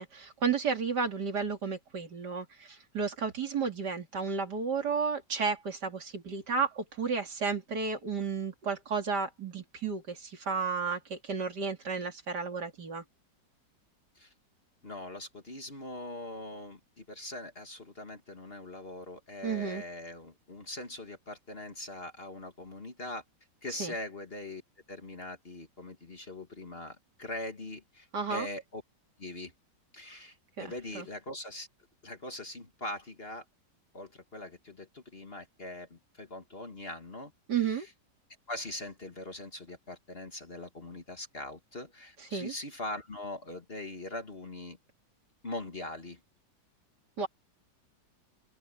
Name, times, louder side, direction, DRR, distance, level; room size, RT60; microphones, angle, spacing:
voice 1, 0.0-13.0 19.4-19.8 23.8-23.9 28.1-28.5 30.6-31.1 37.5-37.9 42.3-42.5 47.2-47.3, right 5 dB, 65° right, 3.1 m, -32 dB
voice 2, 14.8-23.2 23.6-24.6 24.9-28.8 29.2-29.5 29.9-31.7 32.0-33.4 33.9-37.8 38.5-44.8 45.4-46.2, left 1 dB, 35° left, 2.0 m, -42 dB
open air
omnidirectional pair, 2.0 m